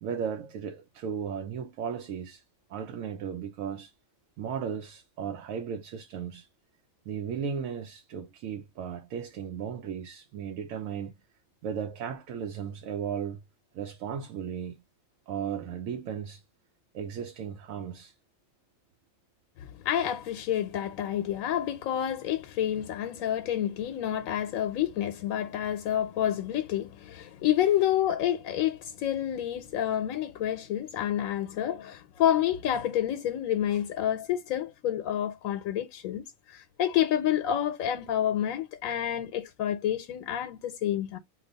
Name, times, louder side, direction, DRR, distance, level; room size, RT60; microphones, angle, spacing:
voice 1, 0.0-2.4 2.7-3.9 4.4-6.5 7.1-11.2 11.6-13.4 13.7-14.8 15.3-16.4 16.9-18.1, right 7 dB, 80° right, 1.0 m, -35 dB
voice 2, 19.8-41.2, left 11 dB, 85° left, 1.0 m, -29 dB
2.9 x 2.2 x 3.8 m
omnidirectional pair, 1.4 m